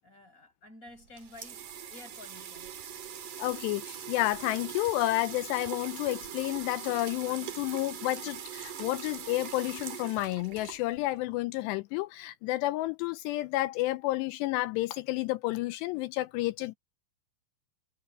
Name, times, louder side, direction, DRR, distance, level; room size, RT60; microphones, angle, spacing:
voice 1, 0.0-2.7, left 2 dB, 15° left, 6.7 m, -51 dB
sound 1, 0.9-11.2, right 8 dB, 50° right, 3.4 m, -42 dB
voice 2, 3.4-16.7, left 17 dB, 80° left, 2.6 m, -31 dB
omnidirectional pair, 5.2 m